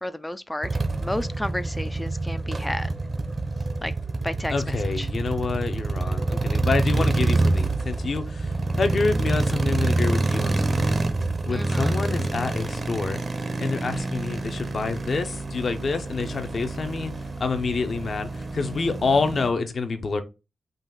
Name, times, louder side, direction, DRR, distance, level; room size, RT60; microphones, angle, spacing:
voice 1, 0.0-0.7 1.0-2.9 3.8-3.9 4.2-5.1 11.5-11.9, left 1 dB, 10° left, 0.3 m, -32 dB
sound 1, 0.6-19.5, right 2 dB, 35° right, 0.7 m, -27 dB
voice 2, 4.5-11.0 11.4-13.2 13.6-20.2, left 4 dB, 50° left, 0.6 m, -27 dB
3.9 x 2.5 x 3.8 m
cardioid pair, 90°, 0 cm